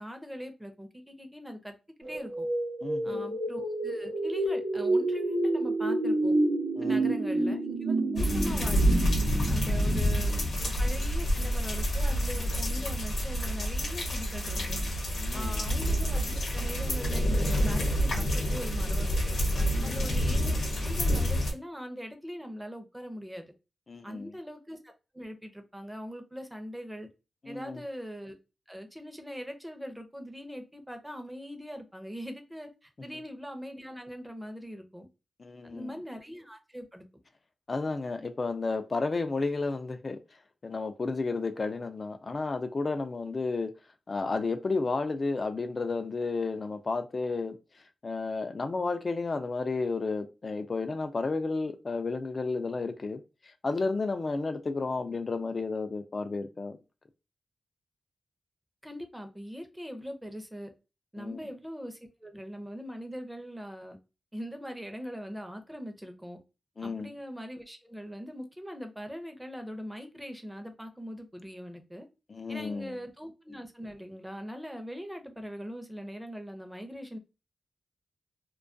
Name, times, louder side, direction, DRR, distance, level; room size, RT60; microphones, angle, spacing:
voice 1, 0.0-1.8 2.1-2.5 3.0-6.3 6.8-8.9 9.5-14.8 15.3-19.4 19.8-23.5 24.0-27.1 27.5-28.4 28.7-35.1 35.6-37.1 58.8-60.7 61.1-64.0 64.3-66.4 66.8-72.1 72.5-77.2, equal, 10° right, 0.6 m, -41 dB
sound 1, 2.0-11.0, right 2 dB, 90° right, 0.7 m, -29 dB
voice 2, 2.8-3.3 6.8-7.1 9.8-10.1 15.1-15.7 19.7-20.0 23.9-24.3 27.4-27.8 35.4-36.0 37.7-40.2 40.6-43.7 44.1-47.6 48.0-56.8 61.2-61.4 66.8-67.1 72.3-73.0, left 3 dB, 45° left, 0.3 m, -32 dB
sound 2, 8.2-21.5, equal, 80° left, 0.8 m, -28 dB
2.3 x 2.2 x 2.5 m
cardioid pair, 80°, 0 cm